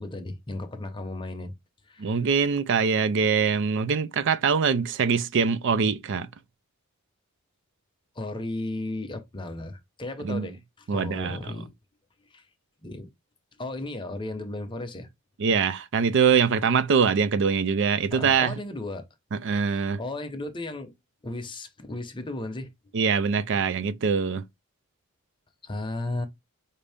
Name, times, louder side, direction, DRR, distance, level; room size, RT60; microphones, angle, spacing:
voice 1, 0.0-1.5 1.9-2.1 8.2-11.7 12.3-12.5 12.8-13.1 13.6-15.1 18.1-19.1 19.7-20.9 21.2-22.7 25.6-26.3, left 2 dB, 20° left, 0.7 m, -35 dB
voice 2, 2.0-6.3 10.2-10.5 10.9-11.4 15.4-18.5 19.3-20.0 22.9-24.4, right 6 dB, 55° right, 0.4 m, -23 dB
5.0 x 2.7 x 3.4 m
head